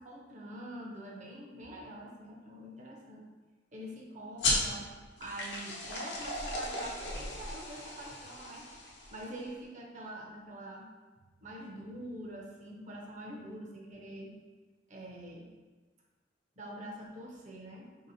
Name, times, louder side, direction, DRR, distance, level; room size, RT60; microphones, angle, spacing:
voice 1, 0.0-3.2 3.7-4.9 5.2-8.6 9.1-10.9 11.4-14.3 14.9-15.5 16.6-18.1, right 1 dB, 45° right, -2 dB, 0.7 m, -45 dB
sound 1, 4.4-9.5, left 2 dB, 75° left, 0.8 m, -36 dB
4.2 x 2.8 x 2.7 m, 1.3 s
head